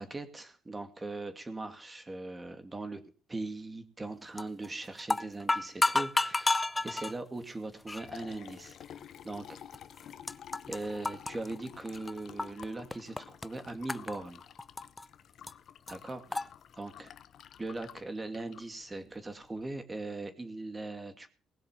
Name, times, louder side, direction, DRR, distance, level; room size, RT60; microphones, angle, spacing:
voice 1, 0.0-3.0 3.3-9.6 10.7-14.4 15.9-16.5 16.8-17.1 17.6-21.3, right 2 dB, 20° right, 8 dB, 2.6 m, -40 dB
sound 1, 4.4-4.7 5.0-7.1 7.9-8.1 8.8-8.9 9.7-9.8 10.0-10.8 11.0-12.7 12.9-13.5 13.9-15.1 15.5-15.6 15.9-16.0 16.3-16.5, left 2 dB, 20° left, 0.6 m, -30 dB
Liquid, 7.7-19.6, left 9 dB, 70° left, 0.9 m, -51 dB
19.5 x 6.6 x 7.5 m, 0.38 s
cardioid pair, 90°, 0 cm